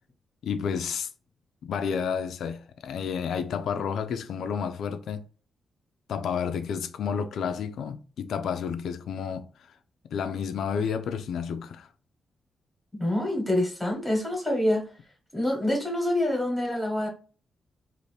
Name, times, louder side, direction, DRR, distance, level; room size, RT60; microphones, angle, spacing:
voice 1, 0.4-1.1 1.6-5.2 6.1-9.5 10.1-11.9, left 7 dB, 70° left, 0.3 m, -30 dB
voice 2, 12.9-14.9 15.3-17.1, left 1 dB, ahead, 1.1 m, -26 dB
2.7 x 2.5 x 3.2 m
wide cardioid pair, 175°, 0 cm